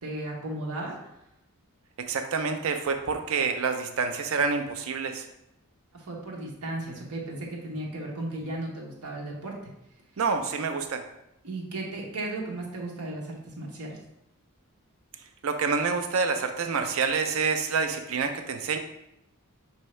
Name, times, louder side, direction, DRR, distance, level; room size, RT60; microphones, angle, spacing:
voice 1, 0.0-1.0 6.0-9.5 11.4-14.0, right 2 dB, 90° right, -2 dB, 1.1 m, -35 dB
voice 2, 2.1-5.3 10.2-11.0 15.4-18.8, right 5 dB, 65° right, 6 dB, 0.5 m, -27 dB
5.5 x 2.7 x 3.1 m, 0.84 s
head